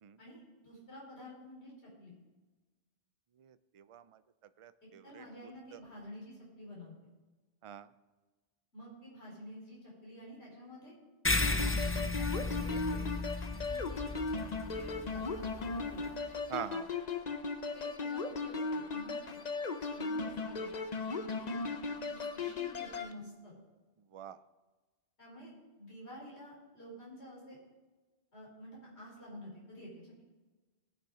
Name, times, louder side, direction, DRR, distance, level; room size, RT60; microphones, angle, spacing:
voice 1, 0.2-1.7 2.0-2.1 5.0-6.9 8.7-10.9 11.5-13.1 13.7-14.1 14.7-16.1 17.7-20.7 21.3-21.6 22.1-23.5 25.2-27.6 28.3-30.2, equal, 70° left, -5 dB, 4.8 m, -50 dB
voice 2, 3.4-4.2 4.6-5.2 5.7-5.8 7.6-7.9 13.5-13.7 16.5-16.9 24.1-24.4, right 10 dB, 50° right, 13 dB, 0.4 m, -44 dB
sound 1, 11.2-16.1, left 2 dB, 15° left, 0.5 m, -35 dB
sound 2, 11.4-23.1, left 4 dB, 40° left, 0.8 m, -37 dB
19.0 x 6.7 x 4.9 m, 1.2 s
omnidirectional pair, 1.1 m